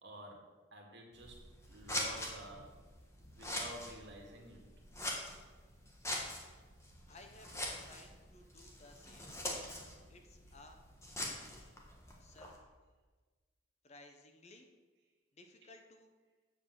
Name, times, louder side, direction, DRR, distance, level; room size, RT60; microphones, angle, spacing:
voice 1, 0.0-1.4 1.7-2.7 3.3-4.6, right 1 dB, 55° right, 0 dB, 2.0 m, -50 dB
Scissors, 1.1-12.6, left 1 dB, 15° left, 1.4 m, -44 dB
voice 2, 7.1-9.3 10.1-10.8 12.2-12.5 13.8-14.7 15.4-16.1, left 2 dB, 30° left, 4 dB, 0.9 m, -58 dB
7.9 x 6.6 x 7.4 m, 1.3 s
head